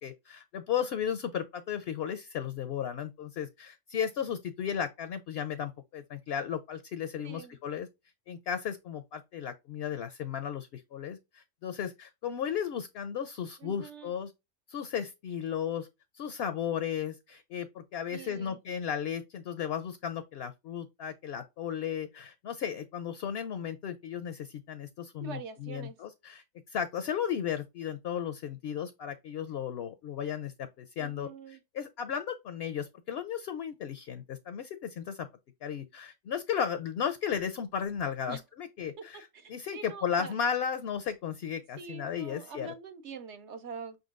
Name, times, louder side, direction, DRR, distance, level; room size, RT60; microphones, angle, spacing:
voice 1, 0.0-7.9 8.3-14.3 14.7-15.9 16.1-35.3 35.6-42.7, left 8 dB, 60° left, 0.7 m, -35 dB
voice 2, 7.2-7.6 13.6-14.1 18.1-18.6 25.2-25.9 31.0-31.6 38.3-38.4 39.0-39.1 39.3-40.3 41.8-44.0, right 5 dB, 60° right, 1.0 m, -44 dB
5.6 x 3.9 x 2.4 m
omnidirectional pair, 1.4 m